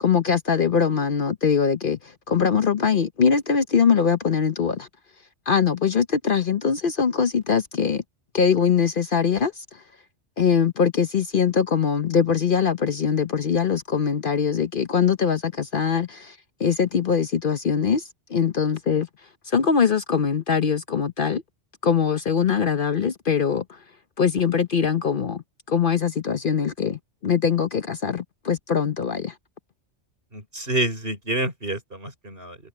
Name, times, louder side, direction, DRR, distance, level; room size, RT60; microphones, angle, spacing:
voice 1, 0.0-2.0 2.3-4.9 5.5-8.0 8.3-9.5 10.4-16.3 16.6-18.0 18.3-19.1 19.5-21.4 21.8-23.6 24.2-25.4 25.7-29.3, left 6 dB, 50° left, 0.9 m, -22 dB
voice 2, 30.3-32.6, right 1 dB, 50° right, 5.0 m, -28 dB
omnidirectional pair, 1.2 m